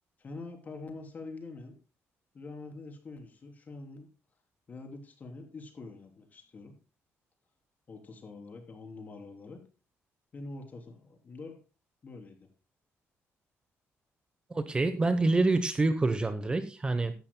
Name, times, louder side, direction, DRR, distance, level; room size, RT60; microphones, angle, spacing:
voice 1, 0.2-1.7 2.3-4.1 4.7-6.7 7.9-9.6 10.3-11.6 12.0-12.4, left 3 dB, 35° left, 4 dB, 3.4 m, -45 dB
voice 2, 14.5-17.1, right 3 dB, 20° right, 11 dB, 0.9 m, -27 dB
16.0 x 11.5 x 2.2 m, 0.32 s
cardioid pair, 145°, 5 cm